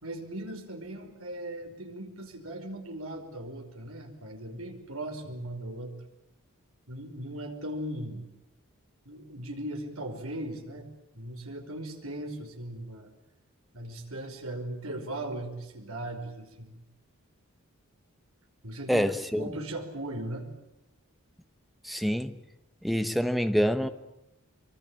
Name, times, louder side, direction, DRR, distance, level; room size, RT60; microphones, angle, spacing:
voice 1, 0.0-5.9 6.9-8.3 9.1-10.9 11.1-13.1 13.7-16.8 18.6-19.1 19.4-20.5, right 1 dB, 75° right, 5.3 m, -38 dB
voice 2, 18.9-19.5 21.8-22.4 22.8-23.9, equal, ahead, 1.1 m, -26 dB
24.5 x 24.5 x 8.9 m
head